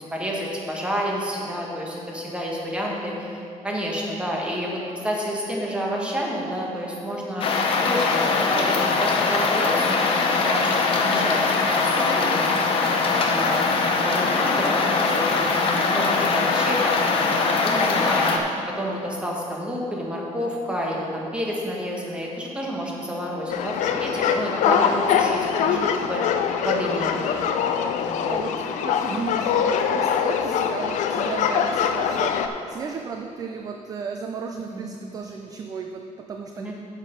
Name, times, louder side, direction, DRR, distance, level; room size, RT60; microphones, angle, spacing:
voice 1, 0.1-7.4 7.8-12.5 13.1-13.6 14.0-18.3 18.8-23.7 24.0-26.2 26.6-27.4 28.1-28.4 29.1-29.3 34.7-34.8 36.6-36.7, equal, 10° right, -2 dB, 1.3 m, -29 dB
sound 1, 7.4-18.4, left 4 dB, 45° left, 0.8 m, -22 dB
sound 2, 23.5-32.5, left 7 dB, 70° left, 0.5 m, -23 dB
voice 2, 25.6-26.1 28.3-28.5 28.8-36.7, right 5 dB, 30° right, 4 dB, 0.4 m, -34 dB
9.5 x 6.6 x 5.2 m, 2.6 s
cardioid pair, 175°, 13 cm